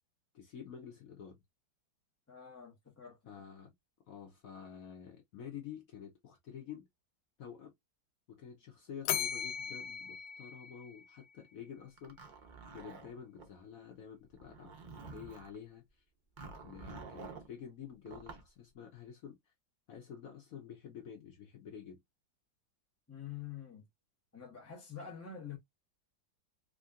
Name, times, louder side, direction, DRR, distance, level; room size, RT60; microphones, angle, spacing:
voice 1, 0.3-1.4 3.3-3.7 4.1-6.9 7.4-7.7 8.3-12.2 12.7-15.8 16.4-19.4 19.9-22.0, left 8 dB, 65° left, 0.9 m, -49 dB
voice 2, 2.3-3.2 23.1-23.9 24.3-25.6, left 8 dB, 20° left, 0.4 m, -46 dB
Bell, 9.0-11.3, left 9 dB, 90° left, 1.3 m, -38 dB
Zipper (clothing), 12.0-13.5 14.3-15.6 16.4-17.5 18.1-18.5, right 4 dB, 85° right, 0.4 m, -49 dB
3.6 x 2.6 x 2.2 m
omnidirectional pair, 2.0 m